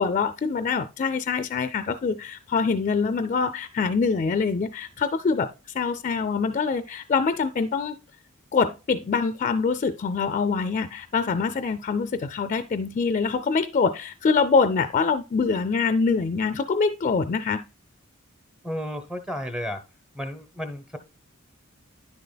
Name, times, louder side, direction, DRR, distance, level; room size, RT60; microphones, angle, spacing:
voice 1, 0.0-5.5 5.7-8.0 8.5-17.6, left 5 dB, 35° left, 0.4 m, -24 dB
voice 2, 18.6-19.8 20.1-21.0, equal, 5° right, 0.7 m, -32 dB
10.0 x 6.7 x 2.2 m
head